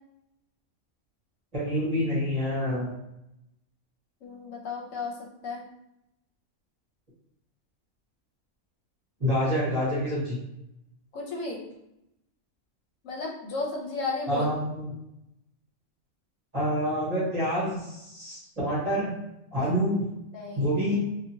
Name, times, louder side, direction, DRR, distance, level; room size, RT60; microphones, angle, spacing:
voice 1, 1.5-2.9 9.2-10.4 14.3-14.9 16.5-19.1 19.5-20.1 20.6-21.0, equal, 30° right, -8 dB, 1.0 m, -27 dB
voice 2, 4.2-5.6 11.1-11.6 13.0-14.5 19.5-19.7 20.3-20.7, left 3 dB, 70° left, -1 dB, 1.0 m, -34 dB
2.7 x 2.5 x 2.7 m, 0.85 s
omnidirectional pair, 1.4 m